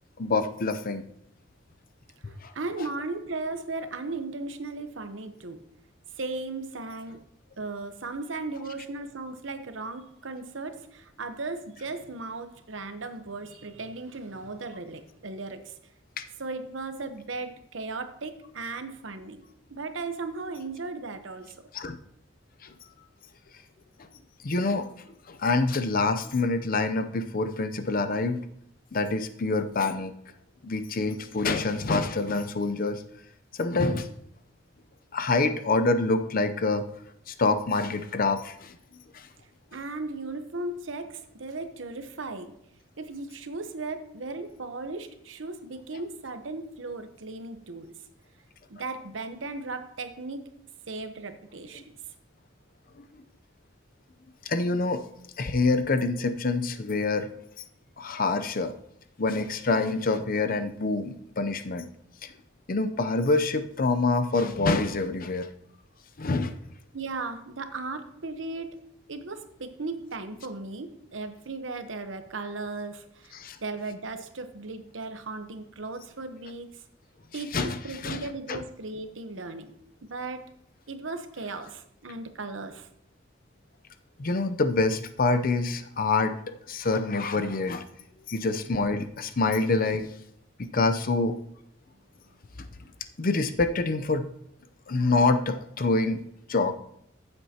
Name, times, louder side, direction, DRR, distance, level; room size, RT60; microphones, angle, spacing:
voice 1, 0.2-1.0 21.7-22.0 24.4-24.9 25.3-28.4 28.9-30.1 30.6-33.0 33.6-34.1 35.1-36.8 37.3-38.8 54.5-55.0 55.4-57.3 58.0-58.7 59.2-61.9 62.7-65.5 66.2-66.5 73.4-73.6 77.5-77.8 78.0-78.2 78.5-78.6 84.2-87.8 88.3-90.1 90.7-91.4 92.6-92.7 93.2-94.3 94.9-96.2 96.5-96.7, left 3 dB, 50° left, 9 dB, 0.6 m, -26 dB
voice 2, 2.2-5.6 6.2-7.2 7.6-15.8 16.4-19.4 19.7-21.5 39.7-42.6 43.0-47.9 48.7-50.4 50.9-52.0 66.9-68.8 69.1-76.8 77.3-79.7 80.0-80.5 80.9-82.9, right 3 dB, 80° right, 8 dB, 1.0 m, -36 dB
14.5 x 7.8 x 2.9 m, 0.74 s
head